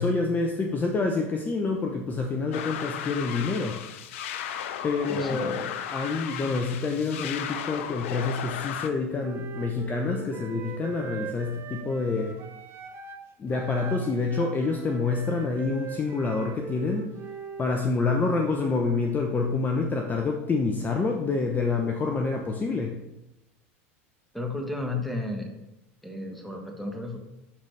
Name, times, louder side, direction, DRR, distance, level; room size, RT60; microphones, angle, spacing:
voice 1, 0.0-3.8 4.8-12.4 13.4-17.1 17.6-23.0, left 4 dB, 25° left, 2 dB, 0.7 m, -27 dB
sound 1, 2.5-8.9, left 9 dB, 70° left, 0.6 m, -35 dB
voice 2, 5.1-5.5 24.3-25.5 26.0-27.2, left 2 dB, ahead, 3 dB, 1.4 m, -33 dB
Wind instrument woodwind instrument, 9.2-13.2 13.5-17.7, right 7 dB, 35° right, 0.9 m, -41 dB
11.5 x 4.1 x 3.3 m, 0.92 s
hypercardioid pair, 95°, 7 cm